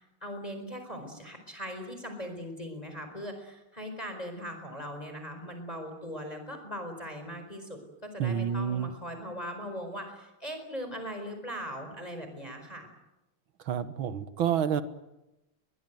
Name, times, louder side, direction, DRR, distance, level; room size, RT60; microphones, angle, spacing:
voice 1, 0.2-12.9, equal, 15° left, 6 dB, 4.5 m, -40 dB
voice 2, 8.2-8.9 13.6-14.8, right 8 dB, 75° right, 12 dB, 2.0 m, -28 dB
22.5 x 21.5 x 9.3 m, 0.97 s
omnidirectional pair, 2.3 m